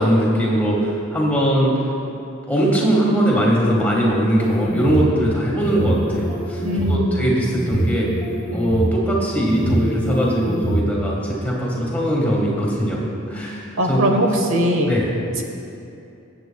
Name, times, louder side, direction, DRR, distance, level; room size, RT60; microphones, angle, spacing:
voice 1, 0.0-1.7 2.5-8.1 8.5-13.0 13.3-14.0 14.8-15.1, equal, 5° left, -4 dB, 1.6 m, -20 dB
sound 1, 4.4-5.1 5.6-7.0 7.5-8.8 9.5-10.8, right 1 dB, 20° right, 1.9 m, -25 dB
voice 2, 6.6-7.1 13.8-14.9, equal, 70° right, 3 dB, 0.9 m, -20 dB
21.5 x 7.9 x 2.3 m, 2.7 s
head